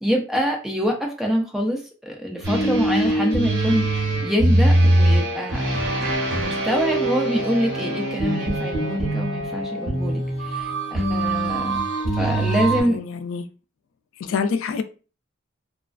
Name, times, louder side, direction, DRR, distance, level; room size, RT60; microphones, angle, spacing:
voice 1, 0.0-5.6 6.3-11.8 12.2-13.0, equal, ahead, 0.4 m, -25 dB
sound 1, 2.4-12.8, right 1 dB, 70° right, 0.9 m, -22 dB
voice 2, 12.5-13.4 14.2-14.8, left 5 dB, 85° left, 0.3 m, -27 dB
2.3 x 2.3 x 2.3 m
head